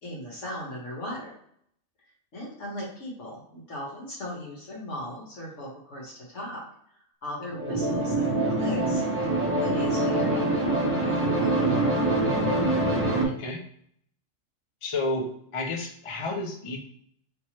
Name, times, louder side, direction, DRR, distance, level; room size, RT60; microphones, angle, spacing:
voice 1, 0.0-1.3 2.3-6.6 7.2-9.0 9.5-10.5 10.9-11.8, equal, 70° left, -3 dB, 1.6 m, -37 dB
sound 1, 7.5-13.3, right 2 dB, 15° right, 0.7 m, -24 dB
voice 2, 12.9-13.6 14.8-16.8, left 2 dB, 35° left, 1 dB, 0.6 m, -32 dB
3.3 x 3.0 x 2.9 m, 0.67 s
omnidirectional pair, 1.3 m